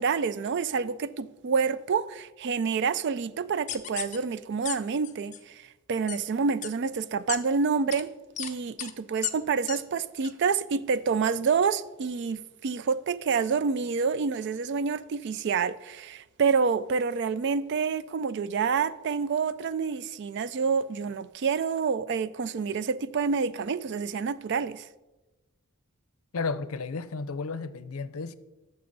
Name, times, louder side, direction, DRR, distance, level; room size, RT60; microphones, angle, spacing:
voice 1, 0.0-8.1 8.4-24.9, right 5 dB, 55° right, 0.4 m, -28 dB
sound 1, 3.7-4.2 4.7-4.8 5.0-5.4 6.1-6.2 6.6-6.7 7.3-7.4 7.9-8.0 8.4-8.5 8.8-8.9 9.2-9.3 9.7-9.8 10.2-10.3, left 11 dB, 35° left, 0.6 m, -33 dB
voice 2, 26.3-28.3, left 4 dB, 80° left, 0.6 m, -33 dB
12.0 x 6.9 x 4.0 m
head